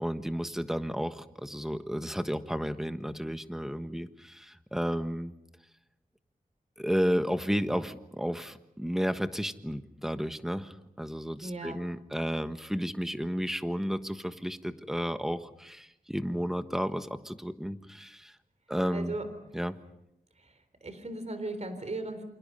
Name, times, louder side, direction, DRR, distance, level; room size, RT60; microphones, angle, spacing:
voice 1, 0.0-5.3 6.8-18.3 18.7-19.2 19.5-19.8, equal, 5° right, 9 dB, 1.4 m, -32 dB
voice 2, 11.4-11.8 18.9-19.3 20.8-22.2, right 2 dB, 50° right, 9 dB, 3.7 m, -36 dB
28.5 x 27.5 x 5.6 m, 0.84 s
wide cardioid pair, 110°, 15 cm